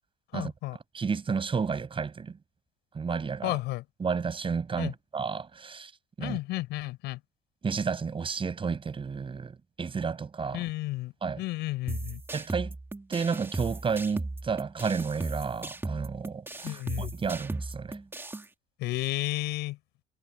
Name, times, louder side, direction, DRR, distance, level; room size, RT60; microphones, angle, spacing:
voice 1, 0.3-0.8 3.4-3.8 4.8-4.9 6.2-7.2 10.5-12.2 16.6-17.1 18.8-19.8, left 19 dB, 90° left, 8.0 m, -32 dB
voice 2, 0.9-2.4 2.9-3.6 4.0-5.9 6.2-6.4 7.6-10.6 11.2-11.4 12.3-12.7 13.1-18.0, right 5 dB, 30° right, 6.7 m, -31 dB
sound 1, 11.9-18.5, right 2 dB, 15° right, 2.4 m, -37 dB
cardioid pair, 110°, 17 cm